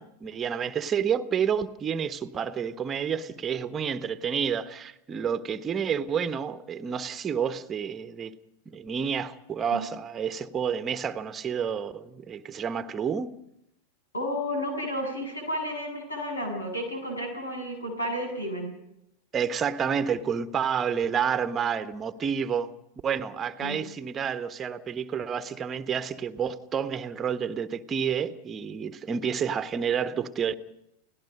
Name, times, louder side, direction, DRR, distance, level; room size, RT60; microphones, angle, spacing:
voice 1, 0.0-8.3 8.6-13.3 19.3-22.7 23.0-30.5, right 7 dB, 20° right, 1.3 m, -29 dB
voice 2, 14.1-18.7 23.6-23.8, equal, 75° left, 7.9 m, -32 dB
29.5 x 18.0 x 5.3 m
figure-of-eight pair, 90°, 0 cm